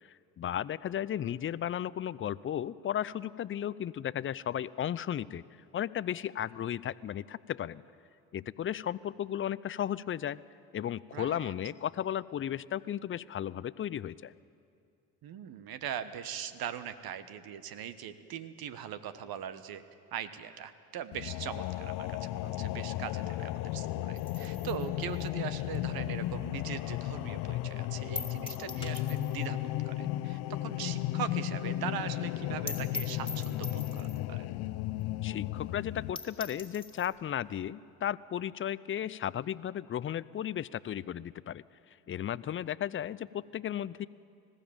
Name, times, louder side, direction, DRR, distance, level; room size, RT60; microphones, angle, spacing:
voice 1, 0.0-5.4 5.7-7.8 8.3-10.4 10.7-14.3 35.2-41.6 42.1-44.1, left 10 dB, 30° left, 19 dB, 0.5 m, -35 dB
voice 2, 11.1-11.5 15.2-19.8 20.1-34.5, right 9 dB, 55° right, 12 dB, 1.3 m, -41 dB
sound 1, 21.1-36.1, left 14 dB, 60° left, 0.8 m, -35 dB
sound 2, 24.2-26.8 27.1-27.2 27.6-27.7 28.1-29.6 29.8-29.9 30.2-30.3 30.7-30.8 31.1-31.2 31.4-31.5 31.8-31.9 32.3-32.4 32.7-34.3 35.0-35.1 35.4-35.5 35.9-36.0 36.2-37.1, left 3 dB, 10° left, 2.5 m, -43 dB
19.5 x 15.0 x 8.8 m, 2.4 s
hypercardioid pair, 65°, 42 cm